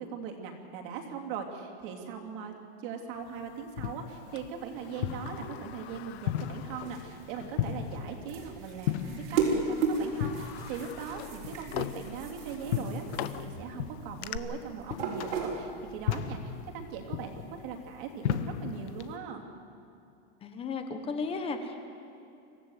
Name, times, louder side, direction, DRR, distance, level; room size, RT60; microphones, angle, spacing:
voice 1, 0.0-2.5 2.8-19.5, right 6 dB, 50° right, 2 dB, 3.1 m, -40 dB
sound 1, 3.3-19.2, left 10 dB, 85° left, 1.4 m, -37 dB
Sliding door, 4.4-7.6 7.9-8.0 9.0-9.2 9.6-14.4, left 12 dB, 65° left, 1.0 m, -43 dB
sound 2, 6.5-16.1, right 4 dB, 90° right, 5.7 m, -35 dB
voice 2, 20.4-21.8, left 4 dB, 15° left, 6 dB, 1.2 m, -34 dB
26.0 x 15.5 x 8.0 m, 2.7 s
supercardioid pair, 170°, 34 cm